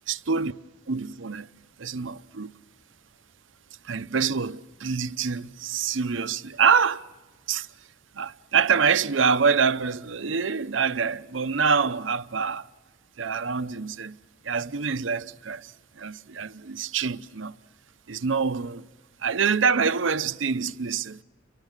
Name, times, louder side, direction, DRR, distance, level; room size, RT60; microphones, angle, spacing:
voice 1, 0.1-0.5 0.9-1.5 1.8-2.5 3.8-7.0 7.5-7.7 8.1-12.7 13.2-14.2 14.4-17.5 18.1-18.9 19.2-21.2, right 6 dB, 75° right, 0.7 m, -25 dB
29.5 x 24.0 x 6.6 m
head